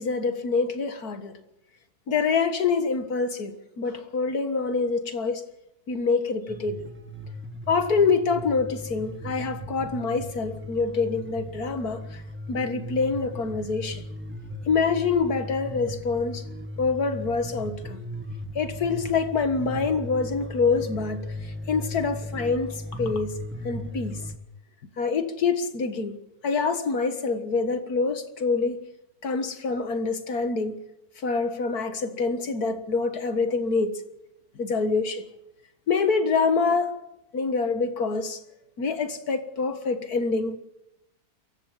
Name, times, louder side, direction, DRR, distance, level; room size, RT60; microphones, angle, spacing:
voice 1, 0.0-1.4 2.1-5.4 5.9-6.9 7.7-12.2 12.5-14.0 14.7-16.4 16.8-18.0 18.6-23.4 23.6-24.2 25.0-28.8 29.2-30.8 31.2-34.0 34.6-35.3 35.9-37.0 37.3-38.4 38.8-40.6, left 4 dB, 75° left, 2.1 m, -26 dB
sound 1, 6.5-24.4, equal, 10° right, 1.6 m, -37 dB
27.0 x 16.0 x 7.4 m
omnidirectional pair, 1.6 m